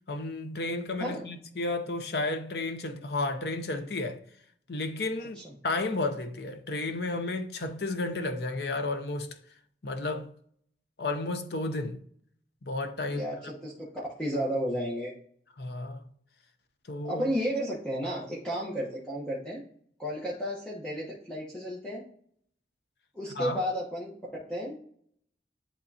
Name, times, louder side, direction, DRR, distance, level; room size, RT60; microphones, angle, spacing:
voice 1, 0.1-4.2 4.7-9.3 9.8-10.3 11.0-12.0 12.6-13.3 15.6-16.0 16.9-17.2 23.4-23.6, left 2 dB, 65° left, 0.7 m, -32 dB
voice 2, 13.1-13.9 14.2-15.1 17.0-19.6 20.0-22.0 23.1-24.8, equal, 5° left, 1.1 m, -33 dB
10.5 x 3.7 x 2.8 m
head